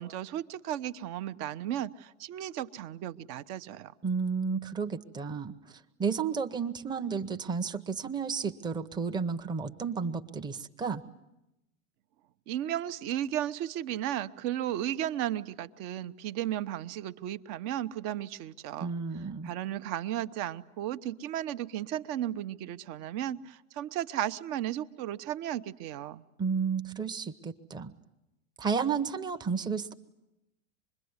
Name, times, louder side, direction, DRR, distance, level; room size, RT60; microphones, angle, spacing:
voice 1, 0.0-3.9 12.5-18.9 19.4-26.2, right 12 dB, 45° right, 12 dB, 0.9 m, -34 dB
voice 2, 4.0-5.5 6.0-11.0 18.8-19.5 26.4-27.9 28.6-29.9, right 5 dB, 10° right, 6 dB, 0.9 m, -32 dB
26.0 x 21.5 x 9.6 m, 0.91 s
hypercardioid pair, 115°, 39 cm